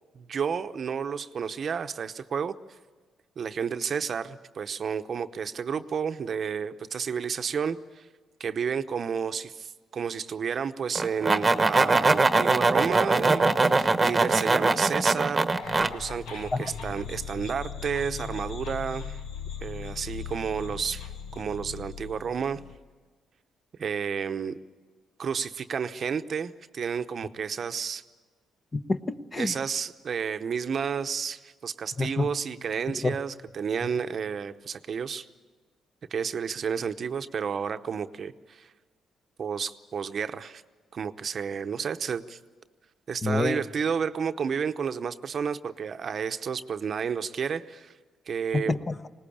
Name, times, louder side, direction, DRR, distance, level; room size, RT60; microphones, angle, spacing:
voice 1, 0.1-2.5 3.4-8.1 8.4-15.5 15.9-19.2 19.6-22.6 23.8-24.6 25.2-28.0 29.4-35.3 36.1-38.7 39.4-40.6 40.9-42.4 43.1-47.9 48.3-48.7, right 6 dB, 50° right, 10 dB, 0.8 m, -31 dB
sound 1, 11.0-15.9, right 3 dB, 25° right, 1.1 m, -22 dB
sound 2, 15.6-22.8, left 6 dB, 85° left, 1.4 m, -39 dB
voice 2, 28.7-29.5 32.0-32.3 32.9-33.1 43.2-43.6 48.5-49.1, left 3 dB, 30° left, 10 dB, 1.0 m, -28 dB
20.5 x 19.0 x 8.7 m, 1.4 s
cardioid pair, 90°, 0 cm